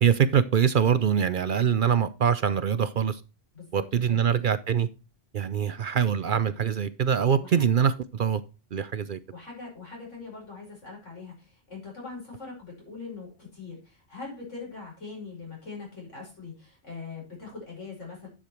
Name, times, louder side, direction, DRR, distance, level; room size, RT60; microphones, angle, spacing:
voice 1, 0.0-3.2 3.7-4.9 5.3-8.4 8.7-9.2, right 8 dB, 55° right, 0.6 m, -24 dB
voice 2, 3.5-4.3 7.4-7.7 9.3-18.3, left 4 dB, 90° left, 6.0 m, -42 dB
10.0 x 6.6 x 4.4 m
omnidirectional pair, 1.2 m